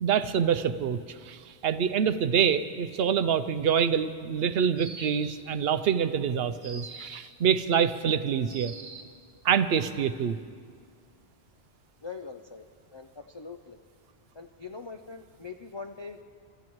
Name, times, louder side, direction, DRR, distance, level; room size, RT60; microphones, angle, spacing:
voice 1, 0.0-8.7 9.4-10.4, right 7 dB, 70° right, 12 dB, 0.8 m, -26 dB
sound 1, 4.8-5.6 6.6-7.4 8.5-9.2, right 3 dB, 55° right, 1.4 m, -44 dB
voice 2, 12.0-12.6 12.9-13.8 14.3-16.2, left 4 dB, 45° left, 3 dB, 0.3 m, -42 dB
29.5 x 13.5 x 3.1 m, 2.1 s
omnidirectional pair, 1.1 m